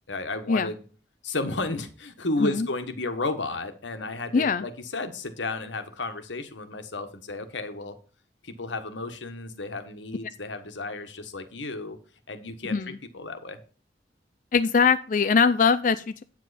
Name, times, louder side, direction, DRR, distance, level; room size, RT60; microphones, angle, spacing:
voice 1, 0.1-0.8 1.2-8.0 8.4-12.0 12.3-13.6, left 2 dB, 90° left, 9 dB, 1.4 m, -33 dB
voice 2, 4.3-4.6 12.7-13.0 14.5-16.2, left 5 dB, 45° left, 11 dB, 0.4 m, -22 dB
9.1 x 7.5 x 4.1 m, 0.39 s
head